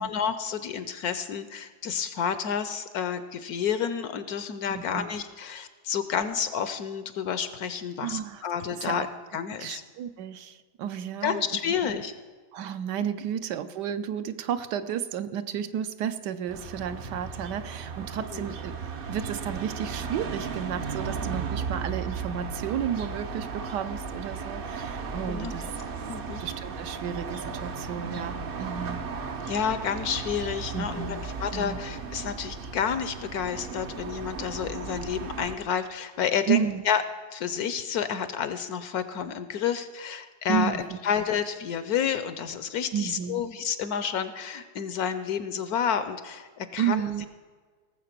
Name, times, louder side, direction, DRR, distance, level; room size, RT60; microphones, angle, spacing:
voice 1, 0.1-9.1 9.3-9.8 11.2-12.1 18.3-18.4 25.3-25.5 26.1-26.4 29.5-37.0 37.3-47.0, left 7 dB, 65° left, 12 dB, 1.0 m, -30 dB
voice 2, 4.7-5.1 8.0-8.5 8.8-9.1 9.6-11.9 12.5-18.7 19.1-25.7 26.4-29.0 29.4-29.5 30.7-31.2 31.5-31.8 36.5-36.8 40.5-41.0 42.9-43.5 46.8-47.3, right 9 dB, 75° right, 10 dB, 1.2 m, -32 dB
sound 1, 16.5-35.6, right 5 dB, 55° right, 0.6 m, -35 dB
17.5 x 7.3 x 5.9 m, 1.5 s
omnidirectional pair, 1.9 m